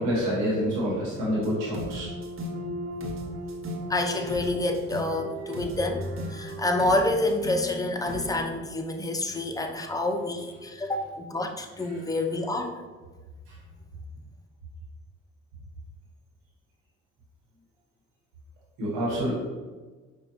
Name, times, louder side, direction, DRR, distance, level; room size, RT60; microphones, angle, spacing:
voice 1, 0.0-2.1 13.5-13.6 18.8-19.4, equal, 85° right, -6 dB, 1.3 m, -27 dB
sound 1, 1.3-8.5, equal, 45° right, 0.8 m, -36 dB
voice 2, 3.9-12.8, left 2 dB, 10° left, 4 dB, 0.5 m, -28 dB
5.0 x 2.4 x 2.9 m, 1.3 s
supercardioid pair, 60°, 31 cm